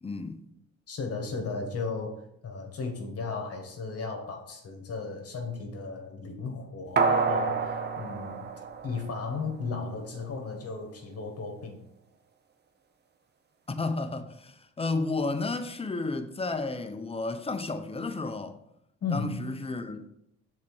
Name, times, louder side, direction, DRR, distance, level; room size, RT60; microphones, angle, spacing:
voice 1, 0.0-0.4 13.7-18.6 19.1-20.0, left 3 dB, 20° left, 0.7 m, -32 dB
voice 2, 0.9-8.5 8.8-11.8 19.0-19.6, left 4 dB, 50° left, 1.6 m, -35 dB
sound 1, 7.0-9.5 9.9-10.0, right 4 dB, 35° right, 0.8 m, -28 dB
6.7 x 4.3 x 4.8 m
cardioid pair, 90°, 30 cm